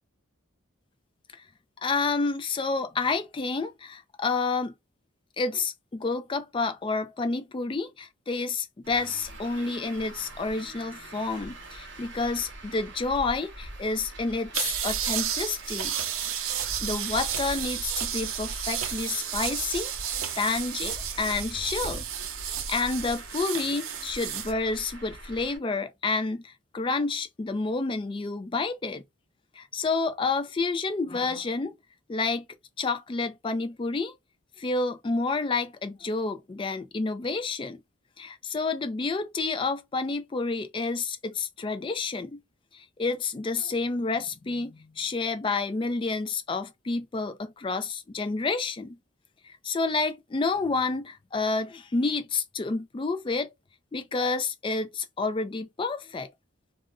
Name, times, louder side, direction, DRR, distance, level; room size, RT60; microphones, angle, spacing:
voice 1, 1.8-4.7 5.4-15.9 16.8-19.9 20.4-22.0 22.7-29.0 29.6-31.7 32.1-32.5 32.8-34.1 34.6-37.8 38.2-42.4 42.7-49.0 49.6-53.5 53.9-56.3, left 3 dB, 25° left, 0.3 m, -29 dB
Traffic noise roadway noise, 8.8-25.6, right 1 dB, 60° right, 0.8 m, -42 dB
sound 1, 14.5-24.5, right 9 dB, 90° right, 0.5 m, -32 dB
2.4 x 2.1 x 3.5 m
head